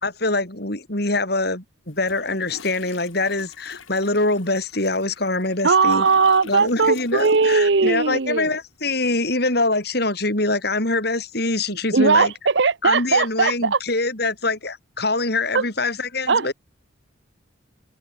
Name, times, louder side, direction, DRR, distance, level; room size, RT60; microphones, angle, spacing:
voice 1, 0.0-6.0 6.5-12.3 12.8-16.5, left 2 dB, 55° left, 4.4 m, -24 dB
Toilet flush, 1.9-7.9 8.1-8.4, left 3 dB, 90° left, 3.9 m, -42 dB
voice 2, 5.6-8.6 11.9-13.8 15.5-15.6 16.3-16.5, right 4 dB, 65° right, 0.8 m, -19 dB
head